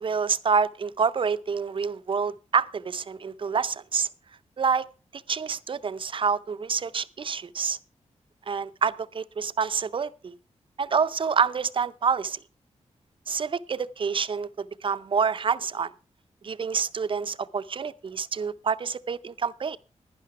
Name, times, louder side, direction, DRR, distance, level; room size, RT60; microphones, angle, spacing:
voice 1, 0.0-4.1 4.6-4.9 5.3-7.8 8.5-10.3 10.8-12.4 13.3-14.5 14.8-15.9 16.4-19.8, right 5 dB, 45° right, 0.5 m, -27 dB
11.5 x 10.5 x 4.8 m
wide cardioid pair, 120°, 12 cm